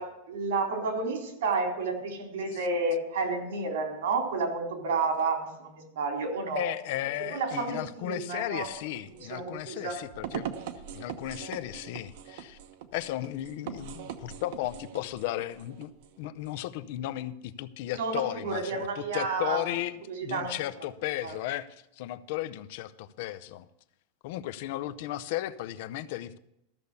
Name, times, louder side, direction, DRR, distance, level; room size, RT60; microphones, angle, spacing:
voice 1, 0.0-6.6 7.3-8.7 9.2-10.0 17.9-19.6 20.1-20.5 21.2-21.3, right 3 dB, 85° right, 2 dB, 3.7 m, -31 dB
voice 2, 6.5-10.5 10.9-12.6 12.9-15.9 16.2-23.7 24.2-26.4, left 14 dB, 50° left, 14 dB, 0.6 m, -35 dB
sound 1, 8.4-16.6, right 9 dB, 55° right, 1.0 m, -42 dB
13.5 x 7.0 x 6.7 m, 0.82 s
supercardioid pair, 175°, 0 cm